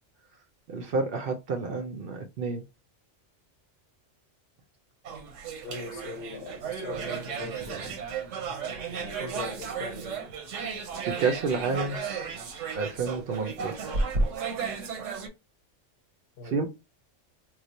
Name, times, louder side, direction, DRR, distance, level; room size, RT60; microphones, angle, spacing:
voice 1, 0.7-2.6 7.4-7.8 10.9-12.0 12.7-14.0 16.4-16.7, right 4 dB, 60° right, 0.7 m, -30 dB
sound 1, 5.0-15.3, right 4 dB, 85° right, 1.1 m, -34 dB
voice 2, 5.6-7.8 8.9-10.2 16.4-16.7, left 4 dB, 60° left, 0.9 m, -40 dB
3.1 x 2.0 x 4.0 m
omnidirectional pair, 1.2 m